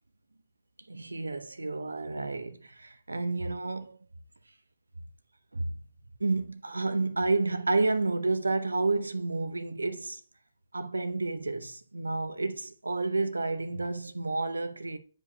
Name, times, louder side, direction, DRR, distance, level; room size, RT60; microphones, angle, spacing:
voice 1, 0.9-4.0 5.5-5.8 6.2-10.2 10.7-15.0, right 3 dB, 80° right, 0.6 m, -30 dB
9.4 x 5.0 x 2.3 m
figure-of-eight pair, 130°, 0 cm